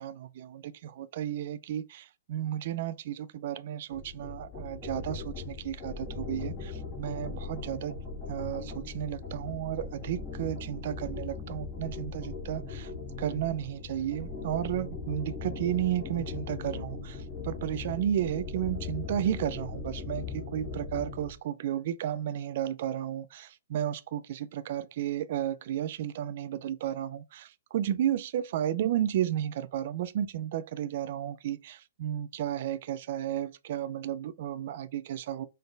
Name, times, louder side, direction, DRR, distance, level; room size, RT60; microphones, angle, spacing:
voice 1, 0.0-8.0 8.3-12.9 13.2-35.5, right 11 dB, 45° right, 0.4 m, -33 dB
sound 1, 3.9-21.3, left 4 dB, 10° left, 2.1 m, -39 dB
4.1 x 3.9 x 3.3 m
hypercardioid pair, 170°, 0 cm